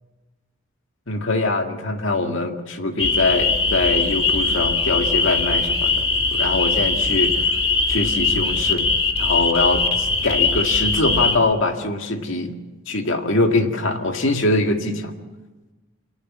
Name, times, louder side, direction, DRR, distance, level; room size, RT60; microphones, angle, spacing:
voice 1, 1.1-5.9 6.3-7.4 7.9-8.9 9.2-12.6 12.9-15.1, left 2 dB, 65° left, 4 dB, 2.0 m, -23 dB
sound 1, 3.0-11.4, left 4 dB, 25° left, 1.8 m, -21 dB
25.0 x 19.0 x 7.5 m, 1.2 s
head